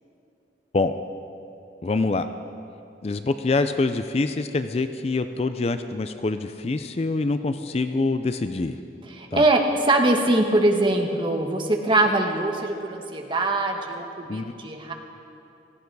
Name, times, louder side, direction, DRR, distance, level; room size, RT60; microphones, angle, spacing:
voice 1, 1.8-2.3 3.0-8.8 9.3-9.4 14.3-14.5, left 3 dB, 35° left, 10 dB, 0.4 m, -25 dB
voice 2, 9.1-14.9, right 2 dB, 30° right, 3 dB, 1.3 m, -22 dB
17.5 x 15.0 x 4.7 m, 2.8 s
head